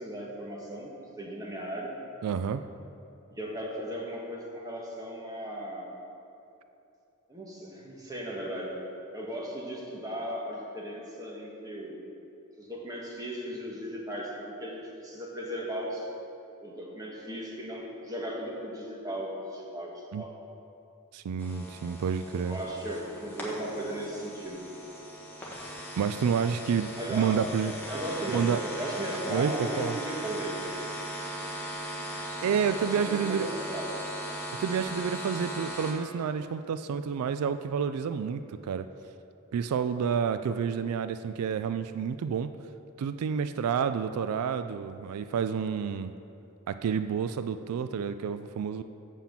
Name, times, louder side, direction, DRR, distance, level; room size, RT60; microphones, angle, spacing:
voice 1, 0.0-2.0 3.3-5.9 7.3-8.8 9.1-12.0 12.6-16.1 16.6-20.4 22.5-24.6 25.4-25.5 27.0-27.4 27.9-30.6 32.7-34.1 34.4-34.5, equal, 15° right, -2 dB, 1.3 m, -37 dB
voice 2, 2.2-2.6 20.1-20.2 21.1-22.6 26.0-27.7 28.3-28.6 29.3-29.5 29.8-29.9 32.4-33.5 34.6-38.9 39.5-42.5 43.0-46.1 46.7-48.8, right 7 dB, 85° right, 10 dB, 0.3 m, -29 dB
sound 1, 21.4-35.9, right 1 dB, 10° left, 1.4 m, -38 dB
7.1 x 5.8 x 7.2 m, 2.8 s
head